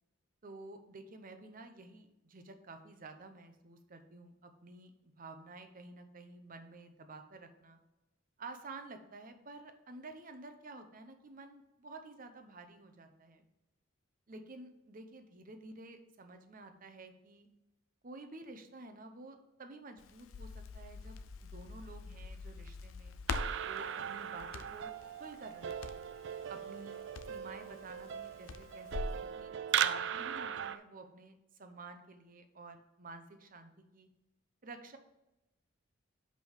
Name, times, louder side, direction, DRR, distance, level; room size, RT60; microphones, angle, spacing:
voice 1, 0.4-4.9 5.2-7.8 8.4-13.4 14.3-17.5 18.0-23.2 23.6-24.9 25.2-26.0 26.5-27.0 27.3-29.5 29.8-34.1 34.6-35.0, right 3 dB, 45° right, 7 dB, 0.8 m, -51 dB
Crackle, 20.0-29.2, left 4 dB, 85° left, 0.5 m, -45 dB
sound 1, 23.3-30.8, right 9 dB, 60° right, 0.4 m, -38 dB
6.3 x 5.3 x 4.9 m, 0.93 s
head